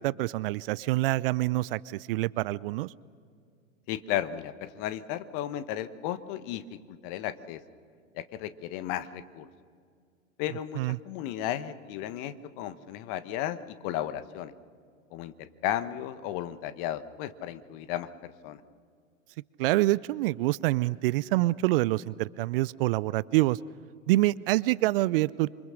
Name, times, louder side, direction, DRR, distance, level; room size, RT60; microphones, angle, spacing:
voice 1, 0.0-2.9 10.8-11.0 19.6-23.6 24.1-25.5, right 18 dB, 45° right, 20 dB, 0.5 m, -26 dB
voice 2, 3.9-7.6 8.1-9.5 10.4-14.5 15.1-18.6, left 11 dB, 45° left, 13 dB, 1.2 m, -34 dB
27.0 x 24.5 x 6.5 m, 2.2 s
hypercardioid pair, 105°, 38 cm